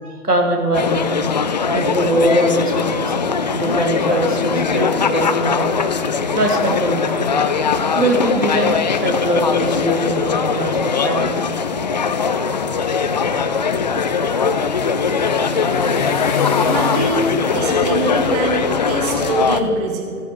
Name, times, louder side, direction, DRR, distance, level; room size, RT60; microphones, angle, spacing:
voice 1, 0.0-1.2 1.7-3.2 3.5-5.7 6.3-7.7 7.9-11.3 14.2-14.3 15.5-15.6, right 1 dB, 90° right, 1 dB, 2.9 m, -21 dB
sound 1, 0.7-19.6, left 5 dB, 30° left, 0.5 m, -20 dB
sound 2, 12.7-19.7, left 6 dB, 70° left, 1.3 m, -30 dB
voice 2, 16.6-20.2, right 3 dB, 25° right, 2 dB, 1.9 m, -23 dB
16.5 x 14.0 x 4.6 m, 2.5 s
figure-of-eight pair, 130°, 45 cm